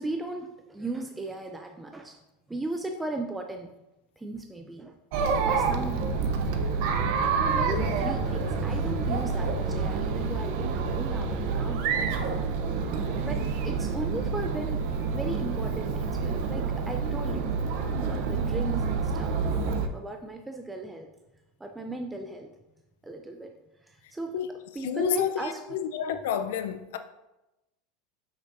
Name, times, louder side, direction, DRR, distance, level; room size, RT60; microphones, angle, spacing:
voice 1, 0.0-2.2 2.5-3.8 4.2-5.0 5.5-6.1 7.4-12.2 13.2-17.5 18.0-19.6 19.9-21.1 21.6-22.5 23.0-23.5 23.8-24.4 24.7-25.6, right 2 dB, 5° right, 0.3 m, -37 dB
Chatter, 5.1-19.9, right 5 dB, 55° right, 0.7 m, -28 dB
voice 2, 24.8-27.0, left 9 dB, 85° left, 0.5 m, -29 dB
7.8 x 6.1 x 2.6 m
supercardioid pair, 160°, 0 cm